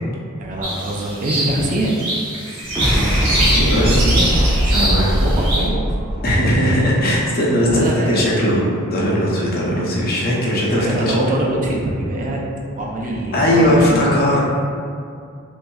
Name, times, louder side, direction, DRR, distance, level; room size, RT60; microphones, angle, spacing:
voice 1, 0.4-1.9 3.3-4.3 4.6-6.0 7.6-8.3 10.8-12.4 12.7-14.3, right 1 dB, 35° right, -2 dB, 0.4 m, -24 dB
sound 1, 0.6-5.7, right 1 dB, 85° right, 1.2 m, -23 dB
sound 2, 2.6-7.1, equal, 20° right, 0.9 m, -20 dB
voice 2, 4.7-5.1 6.2-8.6 8.9-11.2 13.3-14.4, equal, 45° left, -4 dB, 0.7 m, -18 dB
5.3 x 2.0 x 2.3 m, 2.3 s
head